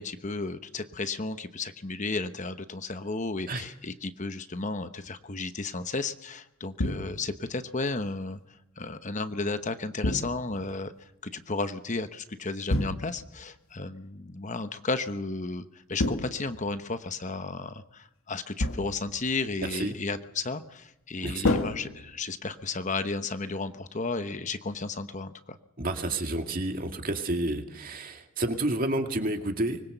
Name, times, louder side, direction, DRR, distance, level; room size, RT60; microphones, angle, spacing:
voice 1, 0.0-8.4 8.8-25.6, left 3 dB, 35° left, 10 dB, 1.0 m, -33 dB
sound 1, 6.8-7.4 10.0-10.7 12.7-13.4 16.0-16.9 18.6-19.2 21.4-22.5, left 1 dB, 80° left, 1.8 m, -30 dB
voice 2, 25.8-29.8, right 1 dB, 40° right, 5 dB, 2.2 m, -30 dB
24.5 x 20.5 x 6.9 m, 0.85 s
head